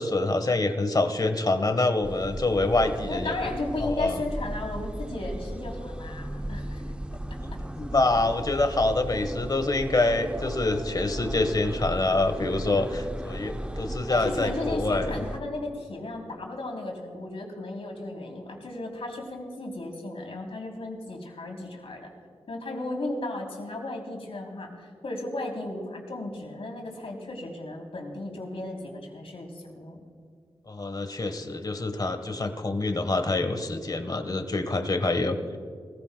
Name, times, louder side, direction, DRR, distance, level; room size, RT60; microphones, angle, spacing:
voice 1, 0.0-3.3 3.8-4.2 7.4-15.2 30.7-35.4, left 2 dB, 40° left, 8 dB, 1.3 m, -26 dB
sound 1, 2.0-15.4, right 1 dB, 10° right, 0.6 m, -36 dB
voice 2, 3.1-6.8 14.1-22.1 22.5-30.0, left 2 dB, 65° left, 0 dB, 3.2 m, -35 dB
21.0 x 15.5 x 2.3 m, 2.1 s
cardioid pair, 55°, 11 cm